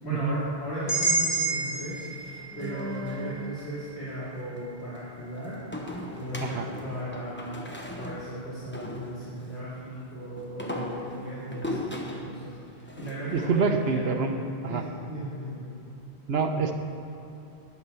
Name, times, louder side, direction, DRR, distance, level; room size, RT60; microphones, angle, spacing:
voice 1, 0.0-14.1 14.7-15.6, equal, 80° left, -11 dB, 2.9 m, -37 dB
sound 1, 0.9-4.9, right 3 dB, 60° left, 2.8 m, -31 dB
sound 2, 1.8-3.7 5.7-9.6 10.4-13.9, left 1 dB, 10° left, 1.0 m, -38 dB
voice 2, 13.3-14.3 14.6-14.8 16.3-16.7, right 4 dB, 70° right, 5 dB, 1.1 m, -26 dB
10.5 x 8.5 x 6.9 m, 3.0 s
omnidirectional pair, 1.1 m